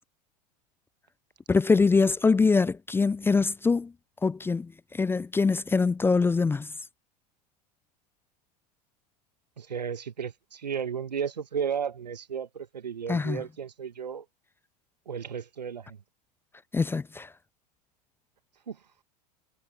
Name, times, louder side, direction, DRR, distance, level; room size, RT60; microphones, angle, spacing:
voice 1, 1.5-3.9 4.2-6.7 13.1-13.4 16.7-17.3, left 4 dB, 10° left, 0.5 m, -24 dB
voice 2, 9.6-14.3 15.1-16.0 18.7-18.8, right 7 dB, 80° right, 1.7 m, -34 dB
figure-of-eight pair, 85°, 21 cm